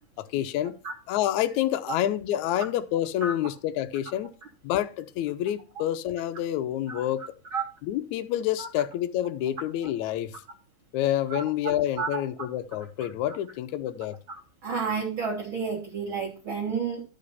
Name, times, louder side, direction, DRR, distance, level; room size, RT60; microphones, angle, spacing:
voice 1, 0.2-0.7 1.1-4.3 4.6-7.2 7.8-10.3 10.9-14.2, left 12 dB, 80° left, 9 dB, 1.7 m, -28 dB
voice 2, 14.3-17.0, right 5 dB, 45° right, -2 dB, 1.7 m, -30 dB
11.5 x 5.0 x 5.6 m, 0.34 s
omnidirectional pair, 4.2 m